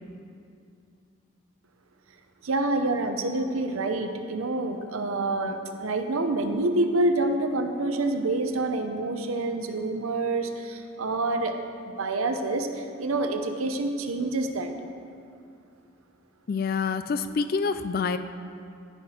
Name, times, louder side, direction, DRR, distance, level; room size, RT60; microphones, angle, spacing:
voice 1, 2.4-11.5 12.0-14.7, right 2 dB, 90° right, 6 dB, 0.8 m, -27 dB
voice 2, 16.5-18.2, left 5 dB, 45° left, 11 dB, 0.3 m, -27 dB
14.5 x 5.9 x 4.4 m, 2.5 s
head